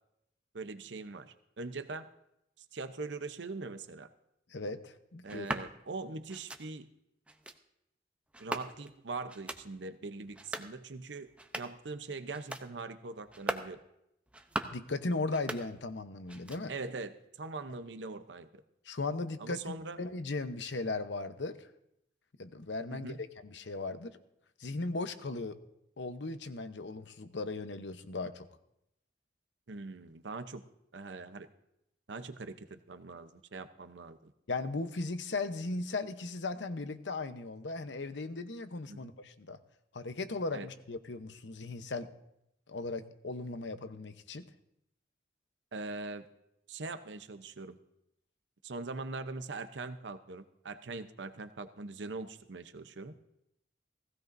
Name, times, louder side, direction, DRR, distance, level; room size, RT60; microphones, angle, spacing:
voice 1, 0.5-2.1 2.7-4.1 5.2-6.9 8.4-13.8 16.7-18.6 19.4-20.0 22.9-23.2 29.7-30.6 30.9-31.5 32.1-34.3 38.9-39.1 40.5-40.7 45.7-46.3 46.7-47.8 48.6-53.1, right 3 dB, 85° right, 10 dB, 0.8 m, -42 dB
voice 2, 4.5-5.5 14.7-16.7 18.9-21.6 22.4-23.2 23.4-24.2 24.6-25.6 26.0-28.5 34.5-39.6 39.9-42.1 42.7-44.5, left 3 dB, 80° left, 10 dB, 0.9 m, -37 dB
sound 1, 5.3-5.7 6.3-6.6 7.3-7.6 8.3-9.0 9.3-9.6 10.3-10.7 11.3-11.8 12.3-12.7 13.3-13.7 14.3-14.8 15.3-16.0 16.3-16.9, right 1 dB, 5° right, 0.6 m, -40 dB
17.5 x 16.0 x 2.6 m, 0.81 s
head